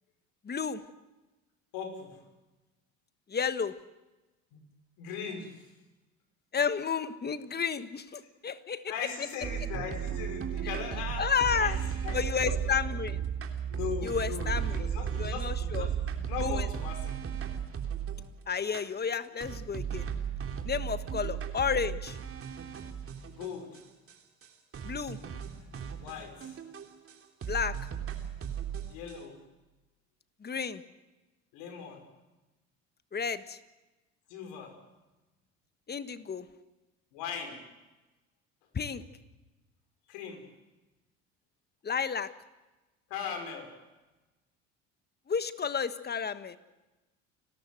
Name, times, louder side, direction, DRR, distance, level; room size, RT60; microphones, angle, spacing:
voice 1, 0.4-0.8 3.3-3.8 6.5-8.8 11.2-11.8 12.1-13.2 14.0-14.8 15.2-15.9 16.4-16.7 18.5-20.1 20.6-22.2 24.8-25.2 27.5-27.8 30.4-30.8 33.1-33.6 35.9-36.5 38.7-39.0 41.8-42.3 45.3-46.6, left 6 dB, 30° left, 12 dB, 1.5 m, -31 dB
voice 2, 1.7-2.2 4.5-4.6 5.0-5.7 8.9-11.3 11.6-11.7 12.0-12.2 12.4-12.8 13.7-17.1 21.2-21.3 23.3-23.7 26.0-26.6 28.9-29.4 31.5-32.0 34.3-34.7 37.1-37.6 40.1-40.4 43.1-43.7, left 7 dB, 70° left, 4 dB, 5.7 m, -39 dB
sound 1, 9.4-18.3 18.7-18.8 19.4-23.8 24.1-24.2 24.4-24.5 24.7-27.1 27.4-29.1, right 8 dB, 40° right, 3.5 m, -35 dB
30.0 x 13.5 x 7.8 m, 1.1 s
hypercardioid pair, 75°, 34 cm